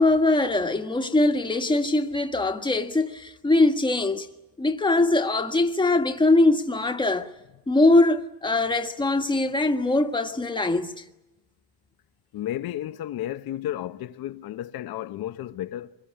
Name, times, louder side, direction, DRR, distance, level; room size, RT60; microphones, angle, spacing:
voice 1, 0.0-4.3 4.6-7.3 7.7-11.0, left 2 dB, 10° left, 1.5 m, -22 dB
voice 2, 12.3-16.0, left 12 dB, 55° left, 0.9 m, -33 dB
25.5 x 21.5 x 8.8 m
cardioid pair, 135°, 43 cm